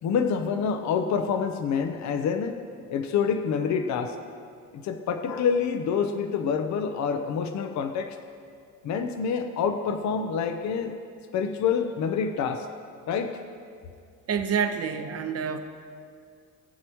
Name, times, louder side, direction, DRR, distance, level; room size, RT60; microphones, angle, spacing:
voice 1, 0.0-2.6 2.9-4.2 4.7-8.2 8.8-11.0 11.3-12.7 13.1-13.4, left 6 dB, 55° left, 7 dB, 0.8 m, -27 dB
voice 2, 14.3-15.6, right 6 dB, 45° right, 6 dB, 1.1 m, -27 dB
20.0 x 7.6 x 3.1 m, 2.3 s
cardioid pair, 100°, 33 cm